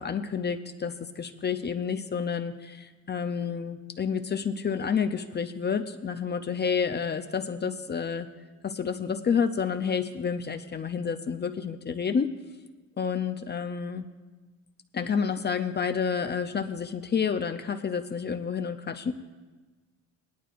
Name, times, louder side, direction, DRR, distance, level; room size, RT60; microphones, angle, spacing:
voice 1, 0.0-8.3 8.6-12.3 13.0-14.0 14.9-19.1, left 6 dB, 35° left, 8 dB, 0.6 m, -29 dB
18.0 x 11.0 x 2.5 m, 1.3 s
cardioid pair, 90°, 30 cm